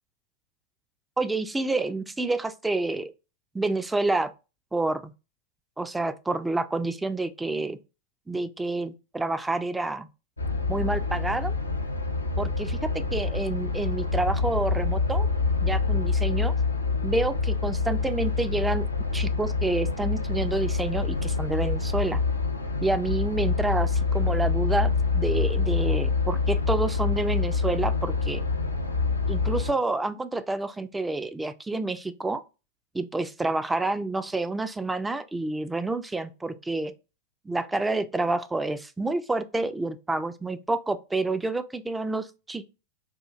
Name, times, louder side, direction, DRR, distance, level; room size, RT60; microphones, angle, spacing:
voice 1, 1.2-3.1 3.5-4.3 4.7-5.1 5.8-7.8 8.3-10.1 10.7-11.6 12.4-12.8 13.1-15.3 15.6-16.5 17.0-18.9 19.1-22.2 22.8-28.4 29.3-32.4 32.9-36.9 37.5-42.6, right 2 dB, 10° right, 0.3 m, -28 dB
sound 1, 10.4-29.7, left 4 dB, 80° left, 0.4 m, -26 dB
4.2 x 2.4 x 2.4 m
figure-of-eight pair, 90°, 0 cm